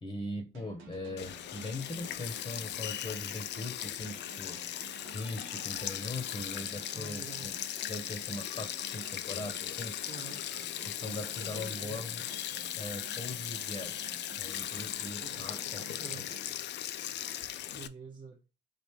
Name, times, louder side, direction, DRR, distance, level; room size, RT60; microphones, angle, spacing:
voice 1, 0.0-7.6 7.9-10.0 10.8-12.2 12.7-16.4, left 2 dB, 25° left, 0.9 m, -41 dB
sound 1, 0.5-17.1, right 5 dB, 75° right, 1.0 m, -53 dB
Sink (filling or washing), 1.2-17.9, left 11 dB, 60° left, 0.4 m, -38 dB
sound 2, 4.8-12.9, right 4 dB, 55° right, 1.2 m, -62 dB
voice 2, 6.9-7.5 10.1-10.4 11.0-12.3 15.2-15.5 16.0-16.3 17.7-18.4, right 5 dB, 20° right, 0.7 m, -48 dB
3.3 x 2.6 x 4.4 m
cardioid pair, 90°, 20 cm